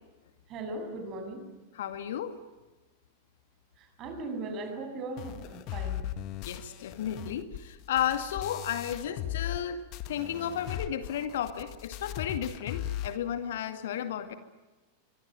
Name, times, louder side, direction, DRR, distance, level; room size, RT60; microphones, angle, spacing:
voice 1, 0.5-1.4 3.8-6.0, right 2 dB, 35° right, 6 dB, 7.5 m, -38 dB
voice 2, 1.7-2.3 6.4-9.8 10.1-14.3, left 9 dB, 60° left, 10 dB, 2.1 m, -33 dB
sound 1, 5.2-9.6 9.9-13.2, left 12 dB, 40° left, 1.7 m, -38 dB
25.5 x 24.5 x 9.1 m, 1.2 s
figure-of-eight pair, 90°, 0 cm